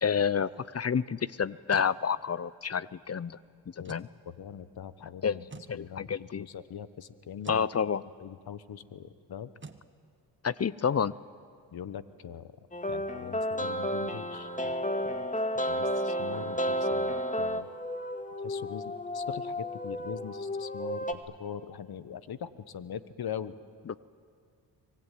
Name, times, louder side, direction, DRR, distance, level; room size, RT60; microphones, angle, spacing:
voice 1, 0.0-3.4 3.9-4.1 5.2-5.4 5.7-6.4 7.5-8.0 10.4-11.1 23.9-24.0, left 7 dB, 35° left, 19 dB, 0.7 m, -29 dB
sound 1, 1.4-2.0 3.8-4.1 5.5-5.8 7.4-7.7 9.6-9.9, right 4 dB, 25° right, 1.6 m, -47 dB
voice 2, 4.2-5.4 5.7-7.7 8.2-9.5 11.7-12.5 12.9-14.7 15.0-15.3 15.7-17.7 18.4-23.6, left 8 dB, 55° left, 14 dB, 1.3 m, -42 dB
sound 2, 12.7-21.1, equal, 15° left, 2.1 m, -32 dB
24.5 x 21.0 x 9.4 m, 2.3 s
supercardioid pair, 60°, 44 cm